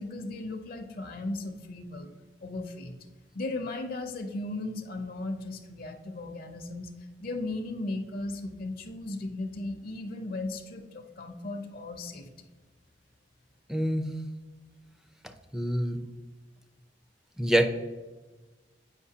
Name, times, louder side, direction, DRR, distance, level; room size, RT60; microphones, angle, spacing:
voice 1, 0.0-2.1 2.4-2.9 3.3-12.5, left 2 dB, 55° left, 6 dB, 0.6 m, -36 dB
voice 2, 13.7-14.0 15.5-16.0 17.4-17.7, right 1 dB, 5° right, 6 dB, 0.5 m, -25 dB
8.1 x 5.3 x 2.8 m, 1.3 s
head